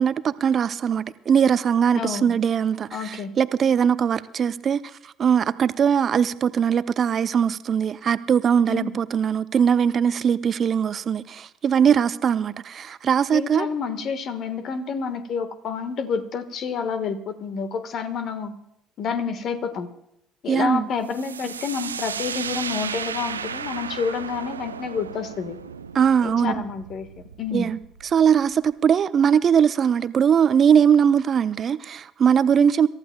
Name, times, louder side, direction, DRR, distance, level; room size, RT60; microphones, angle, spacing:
voice 1, 0.0-13.7 20.5-20.9 25.9-26.5 27.5-27.8 28.1-32.9, right 7 dB, 45° right, 0.6 m, -20 dB
voice 2, 1.9-2.4 2.9-3.3 8.7-8.9 13.3-18.6 19.0-19.9 20.4-25.6 26.2-27.1 27.4-27.7, left 6 dB, 50° left, 1.4 m, -29 dB
sound 1, 21.1-28.7, right 6 dB, 85° right, 0.4 m, -34 dB
27.0 x 14.0 x 2.3 m
figure-of-eight pair, 55°, 0 cm